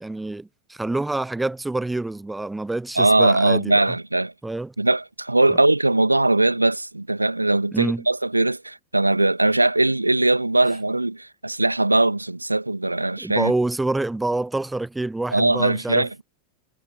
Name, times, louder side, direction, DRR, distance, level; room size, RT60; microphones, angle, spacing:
voice 1, 0.0-3.7 4.4-4.7 7.7-8.0 13.2-16.2, right 2 dB, 5° right, 0.5 m, -27 dB
voice 2, 3.0-4.3 4.8-13.5 15.3-16.1, right 2 dB, 85° right, 2.2 m, -20 dB
figure-of-eight pair, 90°, 0 cm